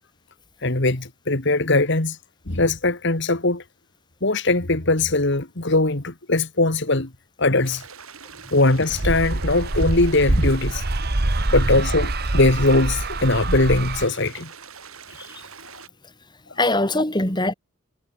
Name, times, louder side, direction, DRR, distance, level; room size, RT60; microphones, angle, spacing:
voice 1, 0.6-2.2 2.5-3.6 4.2-7.1 7.4-7.8 8.5-10.8 11.5-14.5, left 2 dB, 55° left, 2.1 m, -20 dB
sound 1, 7.6-15.9, right 6 dB, 80° right, 6.8 m, -43 dB
sound 2, 8.9-14.1, right 2 dB, 45° right, 1.5 m, -24 dB
voice 2, 16.6-17.5, left 2 dB, 20° left, 3.7 m, -23 dB
head